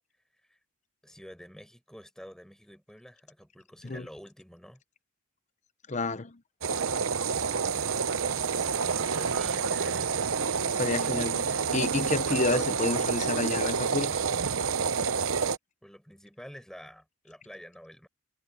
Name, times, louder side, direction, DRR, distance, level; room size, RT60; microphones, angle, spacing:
voice 1, 1.0-4.8 8.9-10.1 15.8-18.1, equal, 5° left, 6.3 m, -48 dB
voice 2, 5.9-6.4 10.7-14.2, left 3 dB, 35° left, 0.8 m, -30 dB
sound 1, 6.6-15.6, right 6 dB, 80° right, 0.8 m, -28 dB
head